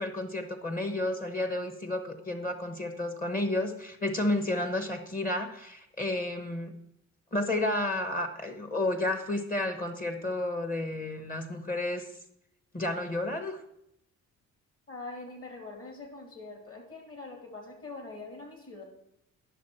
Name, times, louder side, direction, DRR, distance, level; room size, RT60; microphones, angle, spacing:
voice 1, 0.0-6.7 7.3-12.0 12.7-13.6, left 1 dB, 30° left, 7 dB, 1.0 m, -31 dB
voice 2, 14.9-18.8, left 3 dB, 45° left, 3 dB, 2.7 m, -43 dB
10.0 x 6.3 x 4.3 m, 0.78 s
cardioid pair, 90°, 30 cm